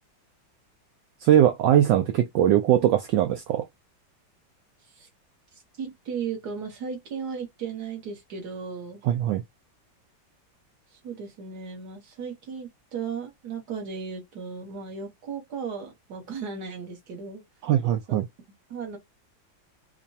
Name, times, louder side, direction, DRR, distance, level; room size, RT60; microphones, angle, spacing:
voice 1, 1.2-3.7 9.1-9.4 17.6-18.2, right 11 dB, 75° right, 1.2 m, -21 dB
voice 2, 5.5-9.0 10.9-17.4 18.1-18.2 18.7-19.0, right 6 dB, 60° right, 1.7 m, -36 dB
5.0 x 2.3 x 2.7 m
omnidirectional pair, 2.1 m